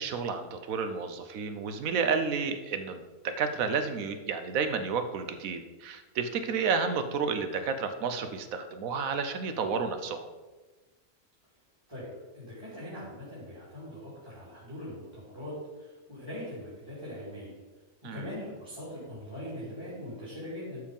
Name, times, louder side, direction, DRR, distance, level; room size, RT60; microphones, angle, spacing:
voice 1, 0.0-10.3 18.0-18.3, right 5 dB, 80° right, 8 dB, 1.3 m, -31 dB
voice 2, 12.3-15.5 16.1-17.5 18.1-20.8, left 1 dB, 15° right, -10 dB, 3.4 m, -41 dB
12.0 x 4.9 x 5.4 m, 1.2 s
omnidirectional pair, 1.4 m